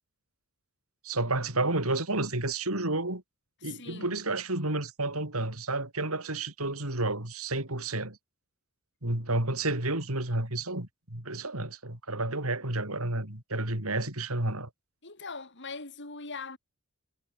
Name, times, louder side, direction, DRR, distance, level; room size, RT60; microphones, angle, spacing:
voice 1, 1.0-3.2 3.6-8.2 9.0-14.7, right 2 dB, 80° right, 5.9 m, -31 dB
voice 2, 3.6-4.2 15.0-16.6, left 4 dB, 55° left, 5.9 m, -41 dB
head